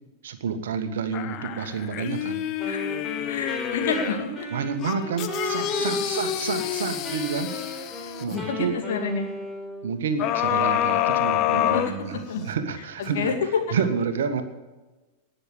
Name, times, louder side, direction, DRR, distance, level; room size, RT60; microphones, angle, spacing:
voice 1, 0.2-2.5 4.5-7.9 8.2-8.7 9.8-13.3 13.7-14.4, right 6 dB, 60° right, 8 dB, 1.6 m, -29 dB
sound 1, 1.1-4.3 4.8-8.5 10.2-12.5 13.0-13.1, left 11 dB, 40° left, 1.1 m, -28 dB
Wind instrument woodwind instrument, 2.6-6.8 7.0-10.0, equal, 10° left, 4.3 m, -35 dB
voice 2, 3.3-4.5 5.4-5.5 8.5-9.3 11.5-11.8 12.1-12.4 13.1-13.3, left 5 dB, 55° left, 4 dB, 2.6 m, -29 dB
19.5 x 6.9 x 8.2 m, 1.2 s
figure-of-eight pair, 90°, 0 cm